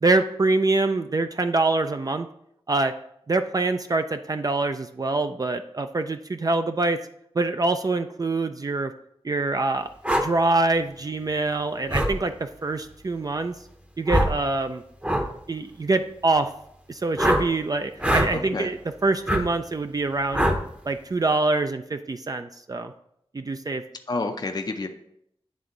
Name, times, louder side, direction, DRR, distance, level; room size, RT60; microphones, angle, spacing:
voice 1, 0.0-2.3 2.7-2.9 3.3-7.0 7.4-8.9 9.2-9.9 10.2-13.5 14.0-14.8 15.5-16.5 16.9-20.5 20.9-22.9 23.3-23.8, right 3 dB, 35° right, 8 dB, 0.4 m, -25 dB
sound 1, 10.0-10.3 11.9-12.1 14.1-14.4 15.0-15.3 17.2-17.4 18.0-18.3 19.3-19.4 20.3-20.6, equal, 10° right, 0.8 m, -22 dB
voice 2, 18.3-18.7 24.1-24.9, left 3 dB, 40° left, 5 dB, 0.5 m, -29 dB
9.3 x 3.5 x 3.8 m, 0.74 s
wide cardioid pair, 55°, 10 cm